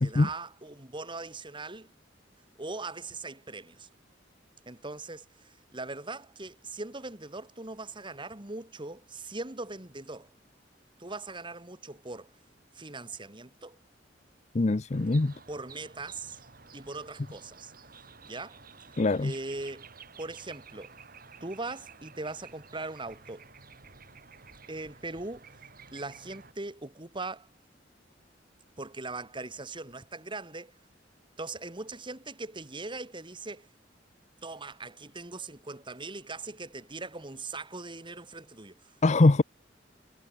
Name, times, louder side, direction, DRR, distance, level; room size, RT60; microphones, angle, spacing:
voice 1, 0.0-1.9 2.6-3.9 4.7-10.3 11.0-12.4 12.7-13.8 15.5-16.4 16.7-17.7 18.2-18.6 19.2-19.9 20.2-20.9 21.4-23.4 24.7-25.5 25.9-27.5 28.8-30.8 31.4-33.7 34.4-39.0, right 3 dB, 25° right, 2.7 m, -40 dB
voice 2, 14.5-15.3 19.0-19.3 39.0-39.4, left 2 dB, 40° left, 0.6 m, -22 dB
sound 1, 14.9-26.5, right 5 dB, 50° right, 5.4 m, -52 dB
head